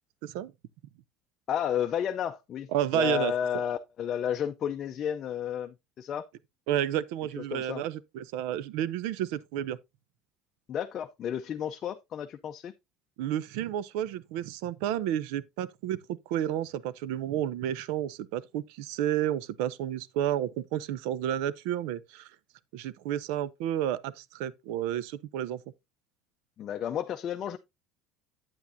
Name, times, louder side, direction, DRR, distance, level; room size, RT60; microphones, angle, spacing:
voice 1, 0.2-0.5 2.7-3.3 6.7-9.8 13.2-22.3 22.7-25.6, right 11 dB, 80° right, 0.5 m, -31 dB
voice 2, 1.5-6.2 7.4-7.8 10.7-12.7 26.6-27.6, left 9 dB, 35° left, 0.5 m, -32 dB
8.7 x 8.3 x 2.6 m
cardioid pair, 145°, 0 cm